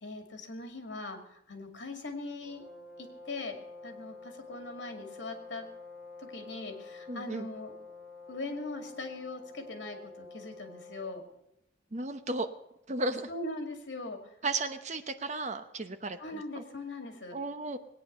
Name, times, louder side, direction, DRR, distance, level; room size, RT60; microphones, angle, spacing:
voice 1, 0.0-2.6 3.0-3.6 3.8-5.7 6.2-7.7 8.3-11.2 13.3-14.2 16.2-17.4, left 2 dB, 65° left, 5 dB, 2.3 m, -40 dB
sound 1, 2.4-11.4, left 3 dB, ahead, 2.1 m, -48 dB
voice 2, 7.1-7.5 11.9-12.5 12.9-13.3 14.4-16.6 17.3-17.8, right 2 dB, 35° right, 9 dB, 0.9 m, -34 dB
20.0 x 9.4 x 6.7 m, 0.82 s
head